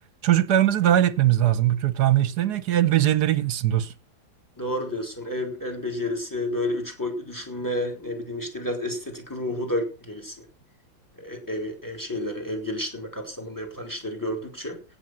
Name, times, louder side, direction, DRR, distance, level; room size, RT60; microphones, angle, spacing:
voice 1, 0.2-3.9, right 12 dB, 65° right, 1.3 m, -21 dB
voice 2, 4.6-10.4 11.2-14.8, left 1 dB, 10° left, 3.5 m, -30 dB
17.0 x 7.1 x 6.2 m
omnidirectional pair, 2.0 m